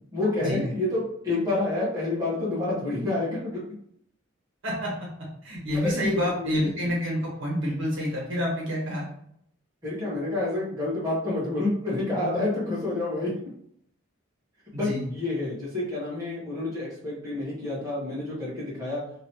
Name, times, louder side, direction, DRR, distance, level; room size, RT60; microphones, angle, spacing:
voice 1, 0.1-3.6 5.7-6.7 9.8-13.3 14.7-19.0, left 2 dB, 15° right, -8 dB, 1.2 m, -28 dB
voice 2, 5.4-9.0 14.7-15.0, equal, 70° right, -3 dB, 1.4 m, -28 dB
2.9 x 2.9 x 2.8 m, 0.68 s
head